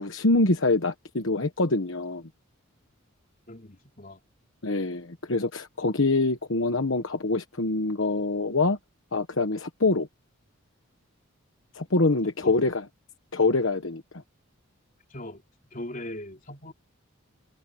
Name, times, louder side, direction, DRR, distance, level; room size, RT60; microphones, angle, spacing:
voice 1, 0.0-2.2 4.6-8.8 9.1-10.1 11.7-12.9 13.3-14.0, left 2 dB, 65° left, 1.2 m, -25 dB
voice 2, 3.5-4.2 12.4-12.5 15.1-15.4 15.7-16.7, left 1 dB, 40° left, 3.8 m, -39 dB
head